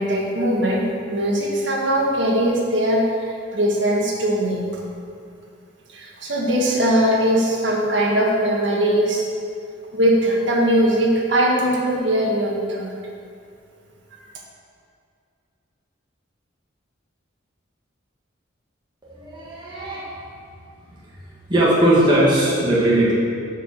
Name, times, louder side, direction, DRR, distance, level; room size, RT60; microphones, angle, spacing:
voice 1, 0.0-3.0 3.5-4.7 5.9-9.3 9.9-12.9, right 1 dB, 60° right, -2 dB, 1.4 m, -20 dB
voice 2, 19.0-20.2 21.5-23.1, right 1 dB, 20° right, -7 dB, 1.4 m, -19 dB
7.7 x 4.8 x 6.2 m, 2.4 s
head